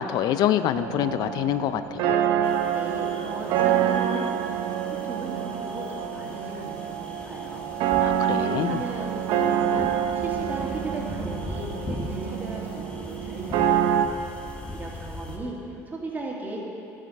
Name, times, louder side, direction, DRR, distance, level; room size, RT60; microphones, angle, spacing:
voice 1, 0.0-2.0 8.0-8.8, left 10 dB, 65° left, 12 dB, 0.5 m, -25 dB
sound 1, 0.7-14.1, right 9 dB, 75° right, 0.7 m, -26 dB
sound 2, 2.4-15.4, left 1 dB, 15° left, 1.3 m, -40 dB
voice 2, 2.7-4.5 5.0-14.2 14.7-16.6, right 2 dB, 25° right, -3 dB, 2.5 m, -37 dB
12.5 x 7.6 x 5.3 m, 2.8 s
supercardioid pair, 95°, 7 cm